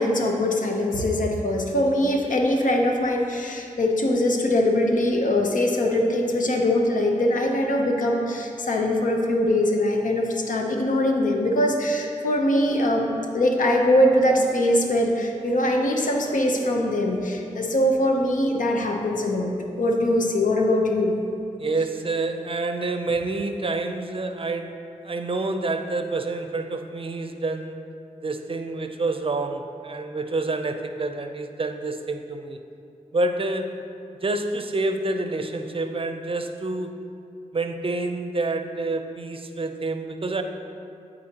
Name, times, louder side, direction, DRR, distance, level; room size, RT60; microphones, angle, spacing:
voice 1, 0.0-13.1 13.3-21.1, left 1 dB, 70° left, 2 dB, 0.8 m, -22 dB
voice 2, 21.6-24.8 25.0-27.8 28.2-32.6 33.1-33.7 34.2-37.0 37.5-40.4, right 2 dB, 40° right, 7 dB, 0.5 m, -28 dB
11.5 x 4.2 x 2.9 m, 2.6 s
cardioid pair, 45°, 14 cm